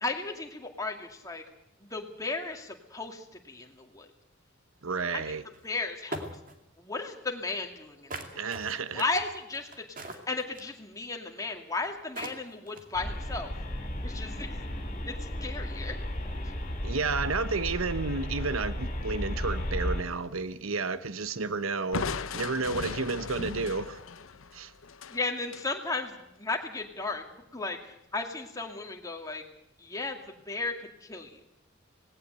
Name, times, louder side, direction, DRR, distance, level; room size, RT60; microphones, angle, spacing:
voice 1, 0.0-1.4 1.8-4.1 5.1-5.4 5.6-6.3 6.8-8.5 8.9-13.5 14.0-14.6 15.1-16.0 16.4-16.5 25.1-29.4 29.8-31.4, left 3 dB, 15° left, 2.4 m, -35 dB
voice 2, 4.8-5.4 8.3-9.0 16.8-22.1 22.3-24.0 24.5-24.7, right 4 dB, 85° right, 0.9 m, -31 dB
sound 1, 5.5-5.6 6.1-6.5 8.1-10.8 11.8-11.9 12.2-13.0, right 2 dB, 40° right, 2.4 m, -40 dB
sound 2, 12.9-20.0, left 1 dB, 35° left, 3.7 m, -34 dB
Crushing, 21.9-25.7, left 4 dB, 80° left, 0.9 m, -37 dB
19.0 x 17.0 x 8.1 m
head